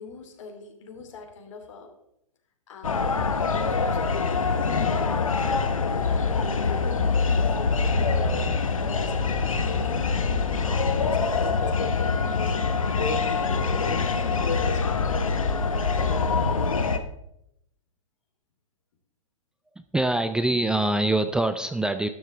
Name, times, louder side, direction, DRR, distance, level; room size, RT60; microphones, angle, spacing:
voice 1, 0.0-1.9 2.7-5.6 6.1-15.3, left 4 dB, 65° left, 4 dB, 2.9 m, -43 dB
sound 1, 2.8-17.0, left 4 dB, 85° left, 1.1 m, -24 dB
voice 2, 19.7-22.1, right 2 dB, 5° right, 9 dB, 0.4 m, -24 dB
12.5 x 10.0 x 3.6 m, 0.79 s
hypercardioid pair, 115°, 17 cm